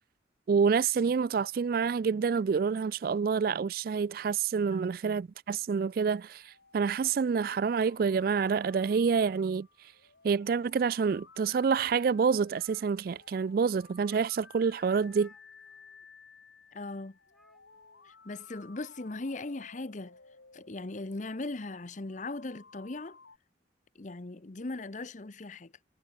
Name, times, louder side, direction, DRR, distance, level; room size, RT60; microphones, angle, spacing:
voice 1, 0.5-9.7 10.2-15.3, right 6 dB, 50° right, 0.3 m, -27 dB
sound 1, 6.2-23.4, left 4 dB, 80° left, 3.3 m, -57 dB
sound 2, 9.2-9.5 10.0-10.9 11.5-11.6 12.0-12.1 12.2-13.6 13.9-14.1 15.0-16.0 17.2-18.1, equal, ahead, 7.5 m, -67 dB
voice 2, 16.7-17.2 18.0-20.2 20.5-23.2 24.0-25.7, left 2 dB, 40° left, 0.8 m, -39 dB
head